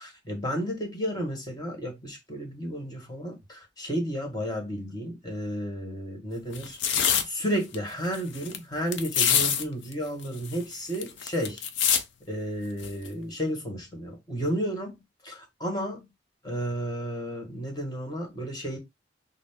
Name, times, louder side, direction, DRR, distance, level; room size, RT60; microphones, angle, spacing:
voice 1, 0.0-6.8 7.3-11.6 12.3-15.0 15.2-16.0 16.4-18.8, equal, 20° left, 1.5 m, -32 dB
sound 1, 6.5-7.2 7.7-7.8 8.0-8.6 8.9-9.6 9.9-10.0 10.2-12.0 12.8-13.1, left 8 dB, 75° left, 0.7 m, -25 dB
6.2 x 2.1 x 3.5 m
head